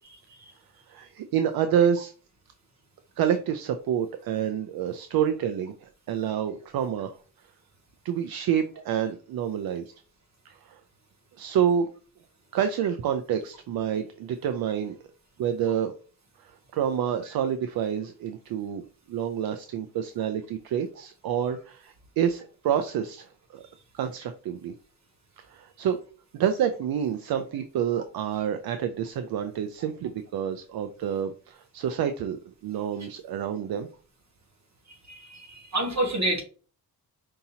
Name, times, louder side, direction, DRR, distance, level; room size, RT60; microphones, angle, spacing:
voice 1, 0.9-2.1 3.2-7.1 8.0-9.8 10.5-10.8 11.4-11.9 12.5-15.0 15.4-15.9 16.7-18.8 19.1-23.3 23.5-23.6 23.9-24.7 25.5-26.0 26.3-33.9, right 9 dB, 70° right, 8 dB, 0.5 m, -28 dB
voice 2, 34.9-36.4, right 1 dB, 45° right, 1 dB, 1.7 m, -28 dB
5.3 x 2.8 x 2.8 m, 0.39 s
cardioid pair, 95°, 38 cm